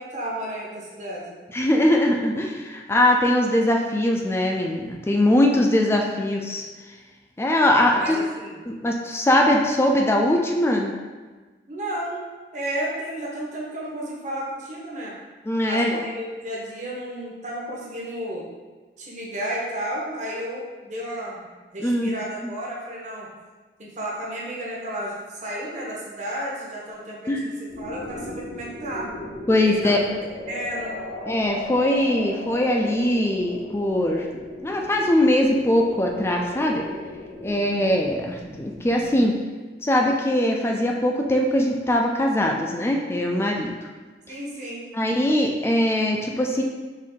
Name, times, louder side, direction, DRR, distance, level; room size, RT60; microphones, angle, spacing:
voice 1, 0.0-1.4 7.9-8.6 11.7-12.3 12.5-15.1 15.7-18.5 19.0-21.5 21.7-23.3 23.8-25.2 25.4-29.1 29.7-29.9 30.5-31.0 44.3-44.8, right 1 dB, 45° right, -4 dB, 0.9 m, -32 dB
voice 2, 1.5-6.6 7.4-8.2 8.7-10.9 15.5-16.0 21.8-22.1 22.4-22.5 27.3-27.5 29.5-30.0 31.3-34.3 34.6-36.9 37.4-39.3 39.8-43.7 44.9-46.6, left 1 dB, 15° left, 1 dB, 0.3 m, -21 dB
sound 1, 27.7-39.2, left 1 dB, 70° left, 0.9 m, -37 dB
4.5 x 2.6 x 3.6 m, 1.3 s
head